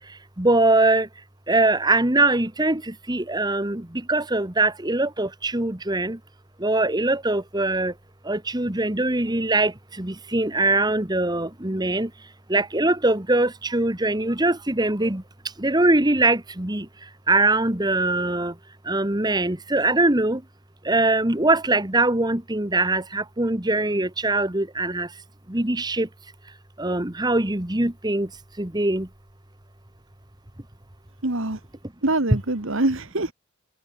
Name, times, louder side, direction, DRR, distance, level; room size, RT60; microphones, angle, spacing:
voice 1, 0.4-1.1 1.5-2.8 3.1-6.2 6.6-7.9 8.3-9.7 10.0-12.1 12.5-15.2 15.6-16.8 17.3-18.5 18.9-20.4 20.9-25.1 25.5-26.1 26.8-28.3 28.6-29.1, right 2 dB, 20° right, 1.5 m, -22 dB
voice 2, 31.2-31.6 32.0-33.3, right 2 dB, 60° right, 1.7 m, -24 dB
head